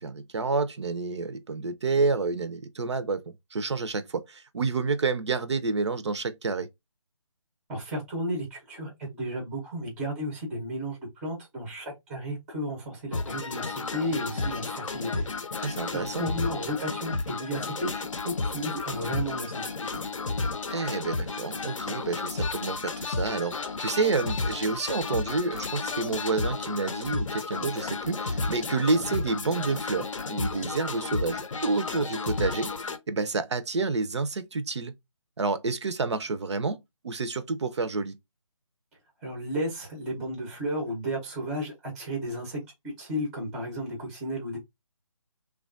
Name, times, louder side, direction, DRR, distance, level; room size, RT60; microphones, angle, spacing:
voice 1, 0.0-6.7 15.6-16.4 20.7-32.7 33.1-34.9 35.4-36.8 37.0-38.2, right 4 dB, 55° right, 0.4 m, -29 dB
voice 2, 7.7-15.6 15.9-20.1 39.2-44.6, equal, 5° right, 0.5 m, -33 dB
sound 1, 13.1-33.0, left 3 dB, 70° left, 0.6 m, -32 dB
3.1 x 2.2 x 2.4 m
figure-of-eight pair, 155°, 17 cm